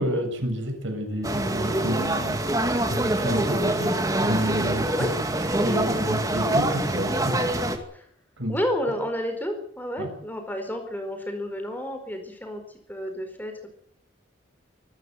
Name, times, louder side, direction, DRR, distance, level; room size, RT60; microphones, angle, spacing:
voice 1, 0.0-2.4 2.9-5.1 5.6-7.4 8.4-8.6 10.0-10.1, equal, 75° right, 5 dB, 7.3 m, -29 dB
sound 1, 1.2-7.8, right 1 dB, 15° right, 2.2 m, -25 dB
voice 2, 8.5-12.6 12.9-13.7, equal, 10° left, 6 dB, 4.7 m, -31 dB
25.5 x 14.5 x 8.1 m, 0.64 s
head